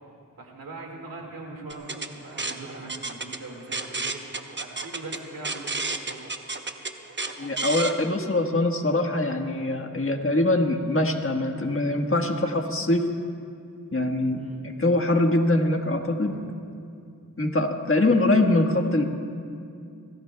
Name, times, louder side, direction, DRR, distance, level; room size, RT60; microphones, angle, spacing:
voice 1, 0.4-4.2 4.6-6.2 14.4-14.6 17.9-18.2, right 2 dB, 90° right, 0 dB, 2.1 m, -41 dB
sound 1, 1.7-7.9, right 3 dB, 35° right, 0.9 m, -32 dB
voice 2, 7.4-13.0 13.9-16.4 17.4-19.0, left 2 dB, 40° left, 3 dB, 1.4 m, -23 dB
26.5 x 17.5 x 2.3 m, 2.4 s
wide cardioid pair, 60°, 34 cm